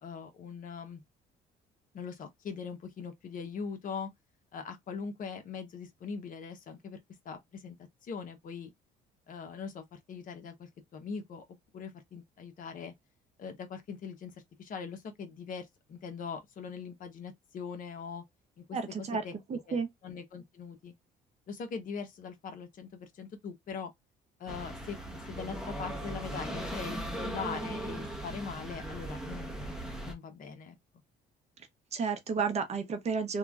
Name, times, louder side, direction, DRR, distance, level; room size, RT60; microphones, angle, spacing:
voice 1, 0.0-1.0 1.9-4.1 4.5-7.0 7.2-7.8 8.0-8.7 9.3-11.4 11.7-12.9 13.4-14.3 14.6-18.2 18.6-18.8 19.2-19.3 19.7-20.9 21.5-23.9 24.4-29.7 30.0-30.8, left 5 dB, 55° left, 0.9 m, -41 dB
voice 2, 18.7-19.2 19.5-19.9 31.9-33.4, right 5 dB, 40° right, 0.8 m, -32 dB
sound 1, 24.5-30.1, right 1 dB, 5° right, 0.9 m, -38 dB
3.1 x 2.3 x 2.4 m
cardioid pair, 110°, 17 cm